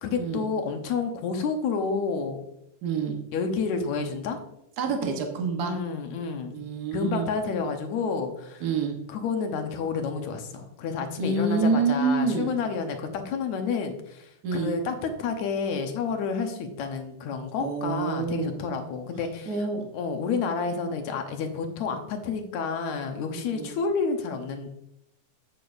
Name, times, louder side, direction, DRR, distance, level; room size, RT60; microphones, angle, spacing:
voice 1, 0.0-2.4 3.3-4.4 5.6-6.6 6.9-8.7 9.1-19.6 19.9-24.7, left 5 dB, 75° left, 5 dB, 2.2 m, -30 dB
voice 2, 2.8-3.2 4.8-5.8 6.5-7.3 8.6-9.0 11.2-12.6 14.4-14.7 17.6-18.6 19.5-19.9 23.5-23.7, right 4 dB, 85° right, 2 dB, 0.8 m, -27 dB
9.0 x 8.2 x 2.6 m, 0.80 s
omnidirectional pair, 3.5 m